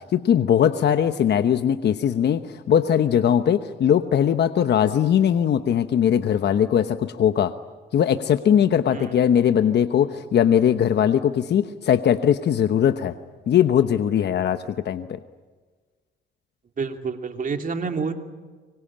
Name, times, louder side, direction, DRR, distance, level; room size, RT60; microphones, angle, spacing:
voice 1, 0.0-7.5 7.9-13.1 13.5-15.2, left 9 dB, 60° left, 10 dB, 1.0 m, -20 dB
voice 2, 16.8-18.1, right 5 dB, 45° right, 5 dB, 3.0 m, -28 dB
25.0 x 23.0 x 8.8 m, 1.4 s
cardioid pair, 90°, 20 cm